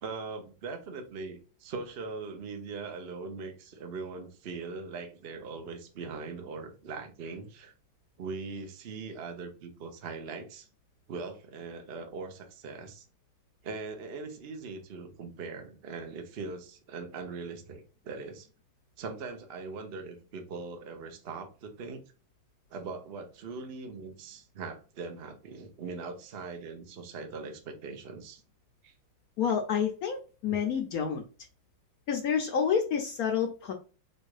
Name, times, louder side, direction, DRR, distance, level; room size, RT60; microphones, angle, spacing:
voice 1, 0.0-7.7 8.2-10.7 11.1-13.1 13.6-18.5 19.0-22.0 22.7-28.4 28.8-28.9, right 4 dB, 90° right, 5 dB, 0.5 m, -41 dB
voice 2, 29.4-31.2 32.1-33.7, left 7 dB, 75° left, 3 dB, 0.8 m, -29 dB
4.5 x 2.4 x 4.8 m, 0.34 s
omnidirectional pair, 2.3 m